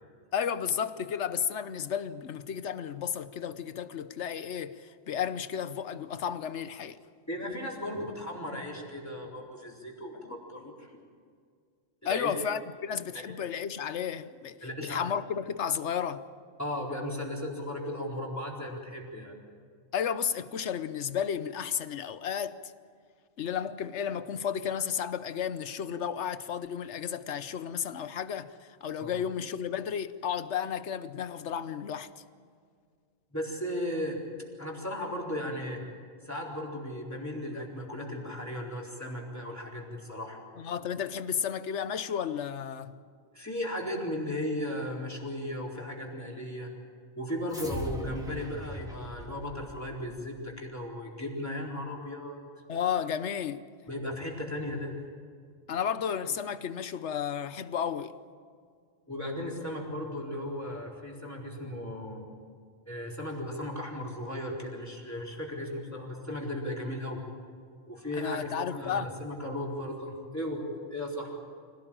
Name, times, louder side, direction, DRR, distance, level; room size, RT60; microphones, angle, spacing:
voice 1, 0.3-7.0 12.0-16.2 19.9-22.6 23.4-32.2 40.6-42.9 52.7-53.6 55.7-58.1 68.1-69.1, left 8 dB, 80° left, 1.2 m, -33 dB
voice 2, 7.3-10.9 12.0-12.3 14.6-15.0 16.6-19.3 29.0-29.1 33.3-34.2 34.6-35.8 36.2-40.4 43.3-46.7 47.2-52.4 53.9-55.0 59.1-62.2 62.9-67.2 67.9-70.6 70.9-71.3, left 1 dB, 15° left, 4.2 m, -36 dB
sound 1, 47.5-50.2, left 1 dB, 5° right, 3.1 m, -40 dB
25.5 x 18.0 x 8.8 m
omnidirectional pair, 1.2 m